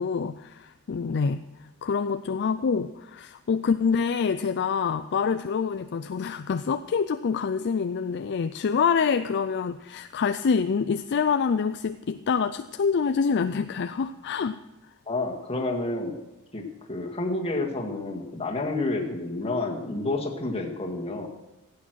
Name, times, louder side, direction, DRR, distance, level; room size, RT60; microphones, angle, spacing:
voice 1, 0.0-1.4 1.8-14.5, left 5 dB, 50° left, 11 dB, 0.4 m, -26 dB
voice 2, 15.1-16.1 16.5-21.3, left 2 dB, 25° left, 1 dB, 2.0 m, -29 dB
15.5 x 8.6 x 6.3 m, 1.0 s
head